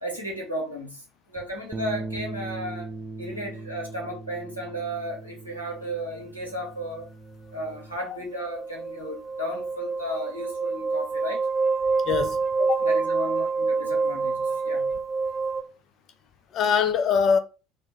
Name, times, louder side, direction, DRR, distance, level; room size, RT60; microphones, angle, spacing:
voice 1, 0.0-2.9 3.2-7.1 7.5-11.5 12.8-14.9, equal, 90° left, 0.8 m, -34 dB
sound 1, 1.7-8.0, right 2 dB, 20° right, 0.3 m, -39 dB
sound 2, 8.0-15.6, right 4 dB, 15° left, 0.7 m, -27 dB
voice 2, 12.1-12.8 16.5-17.4, left 6 dB, 45° left, 0.4 m, -23 dB
2.1 x 2.1 x 3.8 m
figure-of-eight pair, 65°, 0 cm